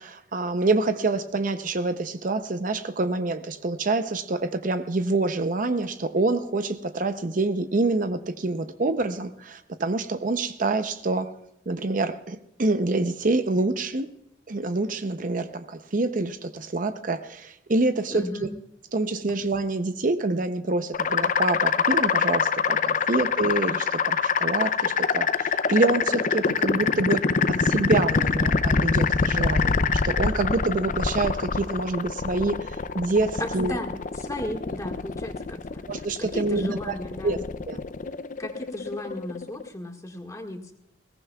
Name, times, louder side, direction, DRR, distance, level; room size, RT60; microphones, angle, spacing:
voice 1, 0.0-11.3 11.7-14.1 14.5-18.5 18.9-27.2 27.5-32.7 32.9-33.8 35.9-36.9 37.2-37.4 37.7-37.8, right 2 dB, 45° right, 10 dB, 0.7 m, -26 dB
voice 2, 18.1-18.5 33.4-37.4 38.4-40.7, left 1 dB, 20° left, 3 dB, 1.8 m, -35 dB
sound 1, 20.9-39.7, left 5 dB, 45° left, 0.5 m, -25 dB
20.5 x 17.5 x 2.3 m, 0.81 s
head